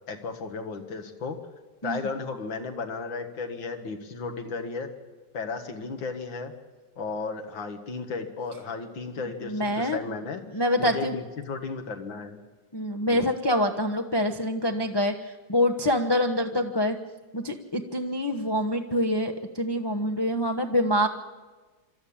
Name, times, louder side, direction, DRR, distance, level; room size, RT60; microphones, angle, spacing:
voice 1, 0.1-1.4 1.8-4.9 5.3-6.5 7.0-10.4 10.8-12.4 13.1-13.3, left 4 dB, 85° left, 5 dB, 2.4 m, -34 dB
voice 2, 9.4-10.0 10.5-11.1 12.7-17.0 17.3-21.1, left 1 dB, 20° left, 4 dB, 0.6 m, -26 dB
26.0 x 13.0 x 8.7 m, 1.3 s
omnidirectional pair, 2.0 m